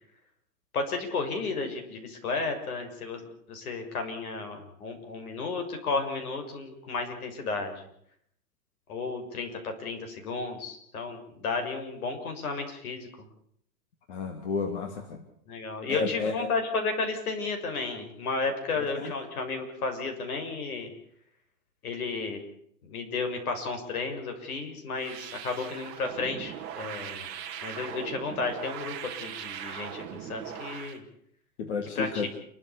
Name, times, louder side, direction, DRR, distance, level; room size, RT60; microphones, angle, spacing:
voice 1, 0.7-7.7 8.9-13.1 15.5-20.9 21.8-22.4 22.8-27.3 27.6-28.9 29.2-31.0 31.8-32.3, left 4 dB, 65° left, 5 dB, 6.6 m, -33 dB
voice 2, 14.1-15.2 15.9-16.3 18.9-19.1 31.6-32.3, left 4 dB, 45° left, 4 dB, 2.6 m, -31 dB
sound 1, 24.9-31.0, right 9 dB, 20° right, 2.2 m, -40 dB
29.0 x 13.5 x 8.4 m, 0.69 s
supercardioid pair, 180°, 48 cm